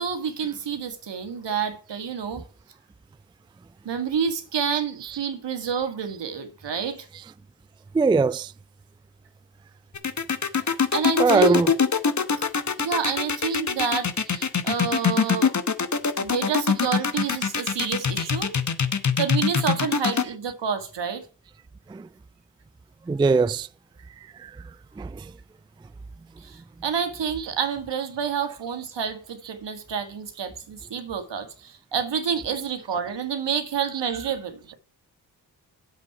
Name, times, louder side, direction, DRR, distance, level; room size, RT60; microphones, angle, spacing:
voice 1, 0.0-2.4 3.9-7.1 10.9-11.6 12.8-14.1 14.6-15.6 16.2-18.5 19.2-21.2 26.4-34.8, right 7 dB, 70° right, 1.9 m, -28 dB
voice 2, 7.9-8.5 11.2-11.8 21.9-22.0 23.1-23.7 24.4-24.5 25.0-25.2, right 4 dB, 10° right, 0.3 m, -21 dB
sound 1, 9.9-20.2, left 6 dB, 40° left, 1.1 m, -23 dB
8.4 x 7.7 x 4.7 m
supercardioid pair, 45°, 44 cm